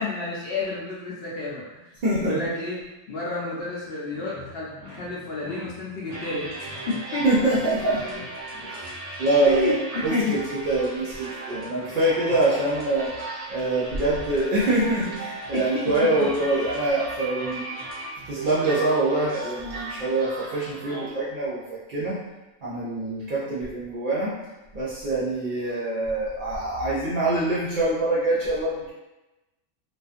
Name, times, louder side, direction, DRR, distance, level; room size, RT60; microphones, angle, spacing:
voice 1, 0.0-1.8 2.2-2.8 3.1-7.2 9.5-10.4 11.8-12.0 12.5-12.6 15.5-15.7, left 3 dB, 60° left, -5 dB, 0.7 m, -30 dB
voice 2, 2.0-2.4 7.2-8.0 9.2-10.4 10.7-13.1 13.5-17.6 18.3-22.2 22.6-24.4 24.7-28.9, right 2 dB, 60° right, -8 dB, 0.6 m, -24 dB
sound 1, 4.1-9.2, left 2 dB, 35° right, 1.0 m, -45 dB
sound 2, 6.1-21.1, right 2 dB, 85° right, 0.9 m, -36 dB
2.4 x 2.4 x 2.4 m, 1.0 s
omnidirectional pair, 1.3 m